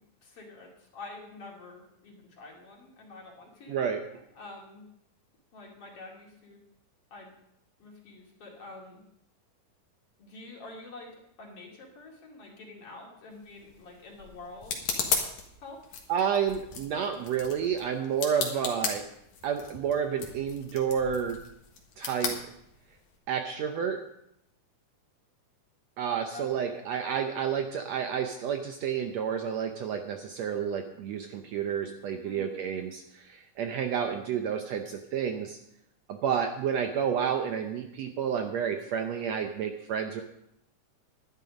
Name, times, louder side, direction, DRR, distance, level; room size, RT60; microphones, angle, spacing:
voice 1, 0.2-3.8 4.4-4.9 5.5-6.6 7.1-7.4 7.8-9.0 10.2-11.1 11.4-14.8 15.6-15.8 18.3-18.7 26.3-26.9 32.2-32.6, left 2 dB, 50° left, -1 dB, 3.1 m, -47 dB
voice 2, 3.7-4.0 16.1-19.0 19.4-21.4 22.0-22.4 23.3-24.0 26.0-35.6 36.1-40.2, right 8 dB, 70° right, 5 dB, 1.7 m, -30 dB
sound 1, 13.3-23.2, left 6 dB, 70° left, 2.9 m, -36 dB
11.5 x 11.0 x 5.1 m, 0.77 s
omnidirectional pair, 3.7 m